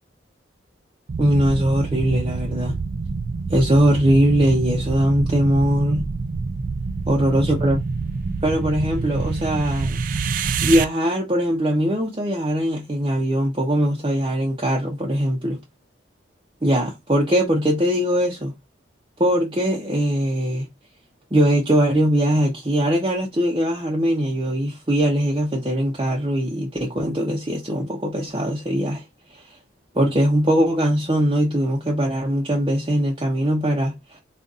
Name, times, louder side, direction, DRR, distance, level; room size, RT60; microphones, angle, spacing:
sound 1, 1.1-10.8, right 4 dB, 45° right, 0.3 m, -27 dB
voice 1, 1.2-2.8 3.5-6.1 7.1-7.8 8.4-10.0 10.6-15.6 16.6-18.5 19.2-20.7 21.3-29.0 29.3-29.6 29.9-34.2, equal, 25° right, 0.7 m, -21 dB
4.0 x 2.5 x 3.6 m
head